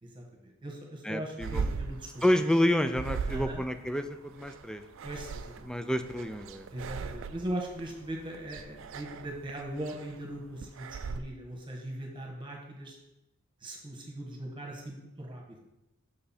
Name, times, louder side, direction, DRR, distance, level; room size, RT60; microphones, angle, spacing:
voice 1, 0.0-2.2 3.3-3.6 5.0-5.7 6.7-13.0 13.6-15.6, right 1 dB, 25° right, 0 dB, 1.4 m, -39 dB
voice 2, 1.0-1.7 2.2-4.8 5.6-6.7, left 1 dB, 5° left, 9 dB, 0.3 m, -29 dB
sound 1, 1.4-11.2, right 5 dB, 65° right, 0.4 m, -39 dB
6.8 x 5.4 x 4.3 m, 0.92 s
head